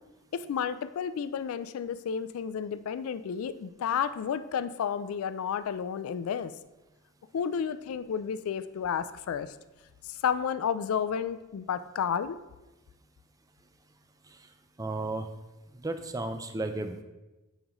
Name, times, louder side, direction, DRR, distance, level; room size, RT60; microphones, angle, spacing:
voice 1, 0.3-6.5 7.3-9.6 10.0-12.4, left 7 dB, 85° left, 13 dB, 0.3 m, -31 dB
voice 2, 14.8-15.3 15.7-17.0, right 2 dB, 15° right, 8 dB, 0.4 m, -34 dB
9.0 x 5.0 x 3.0 m, 1.1 s
head